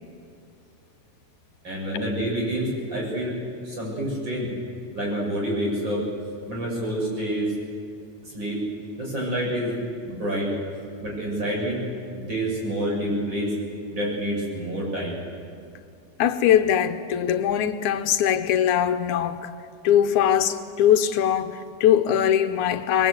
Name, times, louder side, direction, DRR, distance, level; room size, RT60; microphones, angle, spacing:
voice 1, 1.6-3.4 3.6-4.5 4.9-6.1 6.5-7.5 8.2-8.6 9.0-9.8 10.0-10.5 11.0-11.8 12.1-13.5 13.9-15.2, right 1 dB, 35° right, 7.6 m, -27 dB
voice 2, 16.2-19.5 19.8-23.1, left 10 dB, 80° left, 2.2 m, -21 dB
26.5 x 22.0 x 8.2 m
omnidirectional pair, 3.5 m